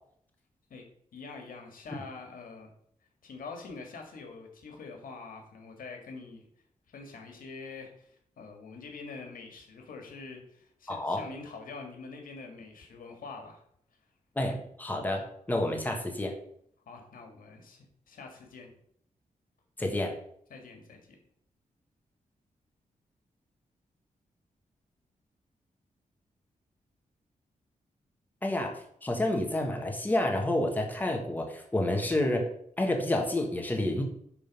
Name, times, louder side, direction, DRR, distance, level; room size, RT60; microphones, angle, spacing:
voice 1, 1.1-2.7 3.2-6.4 6.9-13.6 16.9-18.7 20.5-21.2, left 4 dB, 85° left, 3 dB, 1.9 m, -45 dB
voice 2, 10.9-11.2 14.3-16.4 19.8-20.1 28.4-32.5 32.8-34.0, left 1 dB, 10° left, 2 dB, 1.5 m, -29 dB
11.0 x 4.0 x 5.3 m, 0.66 s
wide cardioid pair, 130°, 14 cm